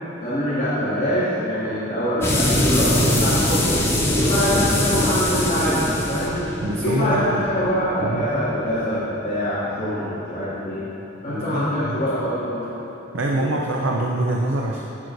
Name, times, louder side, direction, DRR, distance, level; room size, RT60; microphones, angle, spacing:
voice 1, 0.2-3.7 4.1-6.4 6.8-10.8 11.2-12.6 13.3-13.5, equal, 35° left, -13 dB, 2.0 m, -24 dB
sound 1, 2.2-8.7, left 1 dB, 10° left, 0.6 m, -22 dB
voice 2, 6.6-7.4 8.0-8.3 11.3-12.0 13.1-14.8, right 1 dB, 65° right, -1 dB, 0.6 m, -25 dB
16.0 x 6.1 x 2.6 m, 3.0 s
head